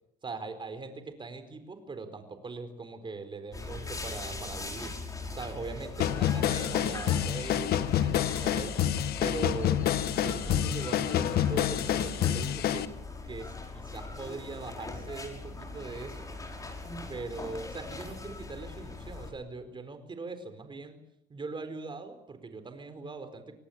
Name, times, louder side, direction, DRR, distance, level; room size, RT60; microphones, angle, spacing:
voice 1, 0.2-4.9 5.3-8.8 9.2-9.8 10.2-12.8 13.3-16.3 17.1-21.0 21.3-23.6, right 4 dB, 30° right, 9 dB, 4.4 m, -41 dB
ambience rural house outdoors noon, 3.5-19.3, left 3 dB, 20° left, 5.7 m, -40 dB
sound 1, 6.0-12.8, left 11 dB, 65° left, 1.5 m, -28 dB
25.5 x 19.0 x 8.6 m, 0.77 s
cardioid pair, 110°, 17 cm